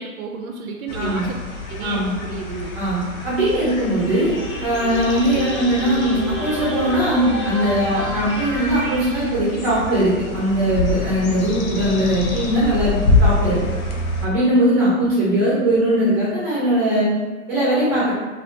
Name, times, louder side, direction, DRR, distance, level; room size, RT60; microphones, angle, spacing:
voice 1, 0.0-1.4 1.7-2.7, right 5 dB, 80° right, 2 dB, 0.5 m, -31 dB
sound 1, 0.9-14.3, left 2 dB, 85° left, 0.7 m, -26 dB
voice 2, 0.9-1.3 1.8-2.1 2.7-4.3 4.6-13.6 14.2-17.1 17.5-18.1, right 1 dB, 25° right, -8 dB, 0.7 m, -20 dB
sound 2, 3.8-9.3, left 1 dB, 25° left, 0.4 m, -30 dB
2.6 x 2.4 x 3.2 m, 1.3 s
hypercardioid pair, 160°, 41 cm